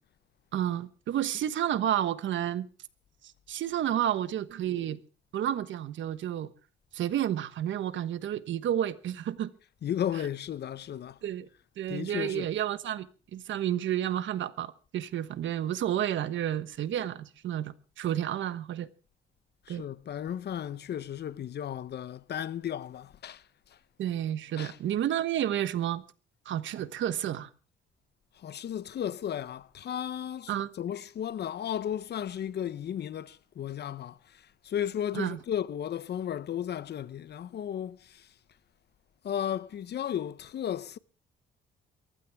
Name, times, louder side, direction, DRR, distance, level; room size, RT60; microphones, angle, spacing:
voice 1, 0.5-2.7 3.5-5.0 5.3-6.5 6.9-9.5 11.2-11.5 11.8-13.1 13.3-18.9 19.7-19.8 24.0-26.0 26.4-27.5 30.5-30.7 35.1-35.4, right 11 dB, 70° right, 1.2 m, -30 dB
voice 2, 9.8-11.2 11.9-12.5 19.7-23.4 24.6-24.7 28.4-30.5 30.8-34.2 34.7-38.0 39.2-41.0, left 10 dB, 60° left, 0.8 m, -34 dB
22.5 x 15.0 x 3.6 m
cardioid pair, 90°, 20 cm